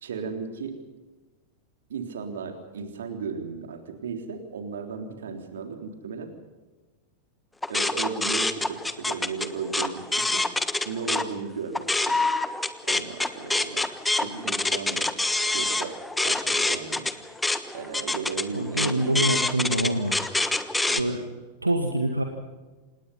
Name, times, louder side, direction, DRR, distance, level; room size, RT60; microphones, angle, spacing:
voice 1, 0.0-0.7 1.9-6.3 7.7-10.4 10.9-12.2 12.8-13.8 14.2-15.1 15.5-16.0 16.2-17.1 17.7-19.3 20.9-21.3, right 5 dB, 65° right, 5 dB, 3.6 m, -35 dB
sound 1, 7.6-11.3 11.6-21.0, left 2 dB, 5° left, 1.4 m, -26 dB
voice 2, 18.5-20.2 20.9-21.2 21.6-22.2, right 1 dB, 85° right, 4 dB, 2.0 m, -25 dB
27.5 x 19.5 x 5.6 m, 1.2 s
figure-of-eight pair, 90°, 0 cm